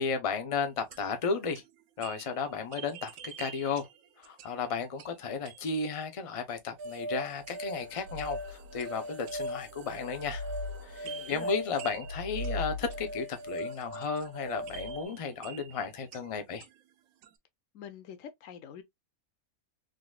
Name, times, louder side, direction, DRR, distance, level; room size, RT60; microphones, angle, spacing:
voice 1, 0.0-1.6 2.0-3.9 4.2-10.5 10.8-16.7, left 5 dB, 50° left, 0.3 m, -34 dB
sound 1, 0.6-5.9 7.5-7.9 8.2-9.8 11.0-16.9 17.2-17.4, right 9 dB, 70° right, 0.9 m, -50 dB
sound 2, 6.8-15.0, equal, 85° right, 1.2 m, -38 dB
voice 2, 11.0-11.5 17.7-18.8, left 8 dB, 70° left, 0.9 m, -46 dB
3.9 x 3.0 x 2.2 m
omnidirectional pair, 1.5 m